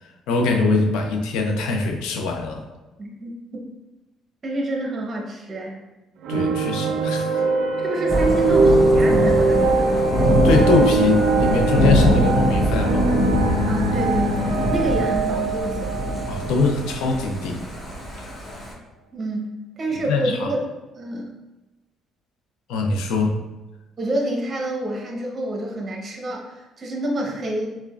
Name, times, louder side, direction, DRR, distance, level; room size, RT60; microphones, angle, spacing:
voice 1, 0.0-2.6 6.3-7.4 10.4-13.1 16.3-17.7 18.2-18.4 20.1-20.5 22.7-23.4, left 3 dB, 85° left, 3 dB, 0.5 m, -22 dB
voice 2, 3.0-3.6 4.4-5.8 7.8-9.9 13.7-16.0 19.1-20.7 20.9-21.3 24.0-27.8, right 1 dB, 35° right, -1 dB, 0.7 m, -28 dB
sound 1, 6.2-17.5, right 3 dB, 75° right, 0.4 m, -22 dB
Thunder / Rain, 8.1-18.7, equal, 25° left, 0.9 m, -23 dB
4.6 x 2.2 x 2.3 m, 1.1 s
cardioid pair, 100°, 0 cm